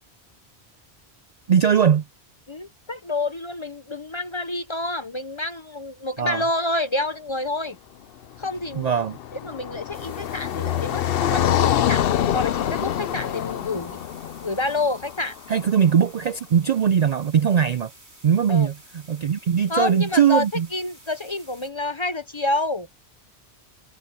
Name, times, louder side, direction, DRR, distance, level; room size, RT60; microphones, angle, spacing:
voice 1, 1.5-2.0 6.2-6.4 8.8-9.2 15.5-17.9 18.2-20.7, right 8 dB, 55° right, 0.4 m, -20 dB
voice 2, 2.5-7.8 8.4-8.9 9.4-12.0 12.3-14.0 14.4-15.3 18.5-18.7 19.7-20.5 20.7-22.9, left 2 dB, 30° left, 0.7 m, -28 dB
Car passing by, 8.4-15.7, left 11 dB, 65° left, 0.8 m, -25 dB
sound 1, 9.9-21.7, right 1 dB, 90° right, 8.4 m, -51 dB
omnidirectional pair, 1.1 m